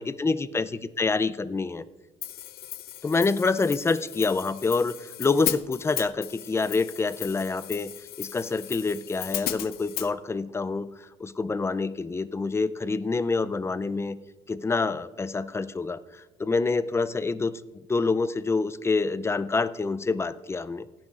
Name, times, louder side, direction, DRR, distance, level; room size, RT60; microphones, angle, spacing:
voice 1, 0.0-1.8 3.0-7.9 8.2-10.9 11.2-14.2 14.5-17.5 17.9-20.9, left 4 dB, 15° left, 14 dB, 0.4 m, -27 dB
Hi-hat, 2.2-10.1, left 13 dB, 65° left, 0.6 m, -36 dB
17.0 x 10.5 x 2.4 m, 1.2 s
cardioid pair, 110°, 17 cm